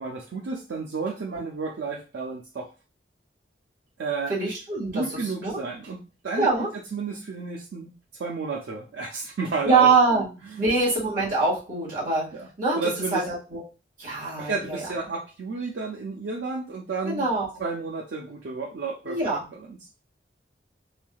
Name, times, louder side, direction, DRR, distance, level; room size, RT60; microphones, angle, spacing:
voice 1, 0.0-2.7 4.0-4.3 4.9-7.9 8.2-10.6 12.3-12.5 12.7-13.2 14.1-17.3 17.6-19.8, right 4 dB, 75° right, -1 dB, 0.4 m, -32 dB
voice 2, 4.3-5.0 5.4-5.6 6.4-6.7 9.6-10.3 10.6-12.3 12.6-12.8 13.1-13.6 14.0-14.8 17.0-17.5 19.0-19.5, right 4 dB, 50° right, -7 dB, 1.7 m, -23 dB
3.3 x 2.6 x 2.2 m, 0.33 s
head